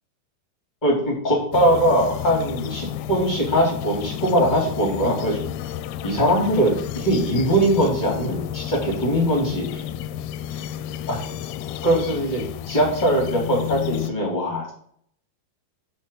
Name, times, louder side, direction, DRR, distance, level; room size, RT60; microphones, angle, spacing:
voice 1, 0.8-5.5 6.0-9.8 11.1-11.3 11.8-14.7, right 1 dB, 10° left, -3 dB, 3.5 m, -21 dB
sound 1, 1.5-14.1, left 11 dB, 85° left, 2.5 m, -32 dB
6.4 x 6.1 x 5.8 m, 0.63 s
omnidirectional pair, 4.5 m